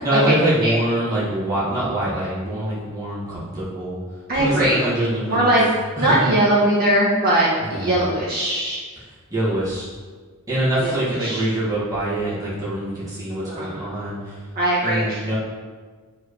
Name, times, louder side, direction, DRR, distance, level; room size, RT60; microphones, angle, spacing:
voice 1, 0.0-4.0 4.3-5.6 6.0-6.3 7.6-7.9 9.3-9.9 10.5-14.4 14.8-15.4, right 1 dB, 15° right, -10 dB, 2.0 m, -24 dB
voice 2, 4.3-4.8 5.3-5.6 6.0-8.8 10.8-11.4 13.3-13.9 14.6-15.4, right 1 dB, 45° right, -8 dB, 2.2 m, -20 dB
9.6 x 4.9 x 3.2 m, 1.5 s
head